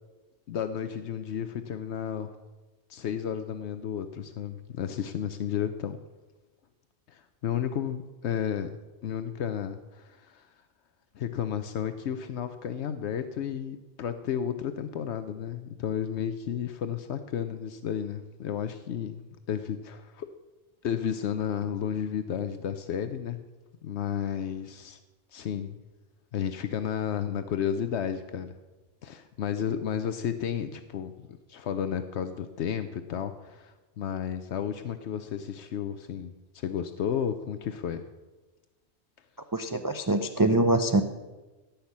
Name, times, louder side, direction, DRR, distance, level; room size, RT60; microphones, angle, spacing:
voice 1, 0.5-2.3 2.9-6.0 7.1-10.5 11.1-20.3 20.8-23.4 23.8-25.0 25.3-25.8 26.3-28.5 29.0-38.0, left 8 dB, 80° left, 10 dB, 1.0 m, -32 dB
voice 2, 39.5-41.0, right 2 dB, 25° right, 7 dB, 0.5 m, -24 dB
17.0 x 5.8 x 8.4 m, 1.2 s
omnidirectional pair, 1.1 m